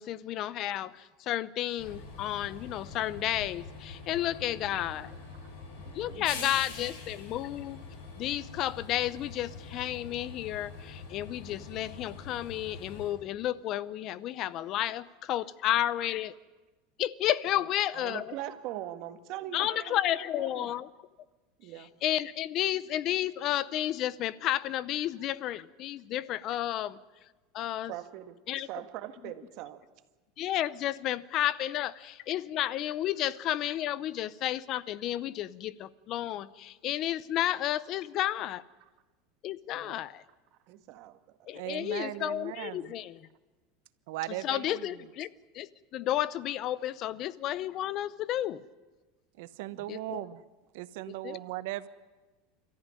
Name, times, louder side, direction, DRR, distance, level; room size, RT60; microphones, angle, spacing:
voice 1, 0.0-5.2 5.9-7.8 8.2-16.4 17.0-18.3 19.5-20.9 21.8-27.0 27.5-27.9 28.5-28.7 30.4-38.6 39.4-40.2 41.5-43.3 44.4-48.6 49.9-50.2 51.2-51.4, left 13 dB, 40° left, 0.6 m, -32 dB
Train, 1.8-13.1, left 4 dB, 60° left, 6.5 m, -45 dB
voice 2, 4.4-6.5 17.9-20.7 21.6-21.9 27.9-29.8 39.7-40.0 40.7-41.2 49.7-49.8, right 13 dB, 50° right, 1.6 m, -43 dB
voice 3, 41.5-42.9 44.1-44.9 49.4-50.4 50.7-51.9, right 16 dB, 70° right, 1.0 m, -38 dB
28.5 x 14.0 x 9.8 m
supercardioid pair, 155°, 0 cm